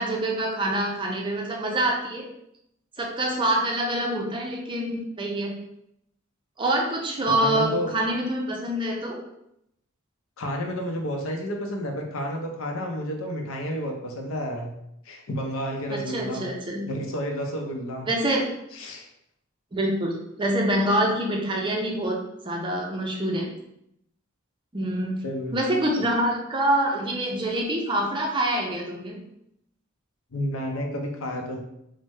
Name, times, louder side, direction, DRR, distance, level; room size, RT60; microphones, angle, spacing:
voice 1, 0.0-2.3 3.0-5.6 6.6-9.2 15.9-16.9 18.1-18.5 19.7-22.2 22.4-23.5 24.7-25.2 25.5-29.2, right 1 dB, 25° right, 0 dB, 0.4 m, -26 dB
voice 2, 7.3-7.9 10.4-14.7 15.0-16.5 16.9-18.1 18.7-19.1 25.2-25.6 30.3-31.6, equal, 70° left, 2 dB, 0.6 m, -30 dB
3.3 x 2.0 x 3.1 m, 0.80 s
head